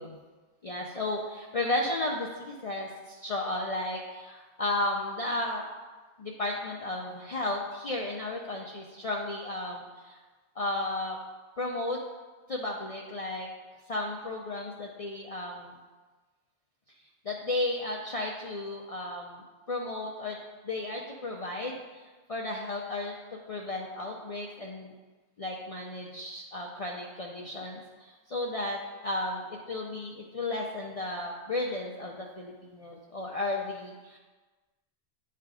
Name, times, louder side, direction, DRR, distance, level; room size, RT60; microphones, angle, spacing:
voice 1, 0.6-5.6 6.2-10.2 10.6-11.2 11.6-12.0 12.5-13.5 13.9-15.8 17.2-20.4 20.6-21.8 22.3-24.9 25.4-29.4 29.7-34.2, left 2 dB, 45° left, -1 dB, 0.5 m, -34 dB
9.2 x 3.4 x 4.8 m, 1.3 s
omnidirectional pair, 1.1 m